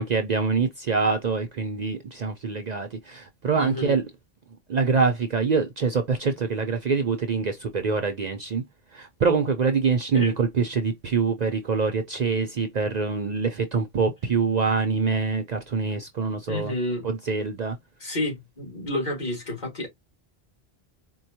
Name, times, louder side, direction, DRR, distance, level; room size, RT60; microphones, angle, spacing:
voice 1, 0.0-4.0 4.7-8.6 8.9-16.7 17.0-17.8, right 5 dB, 50° right, 0.6 m, -25 dB
voice 2, 3.6-4.0 10.1-10.3 16.5-17.0 18.0-19.9, left 1 dB, 45° left, 1.9 m, -30 dB
4.5 x 2.2 x 2.7 m
omnidirectional pair, 1.0 m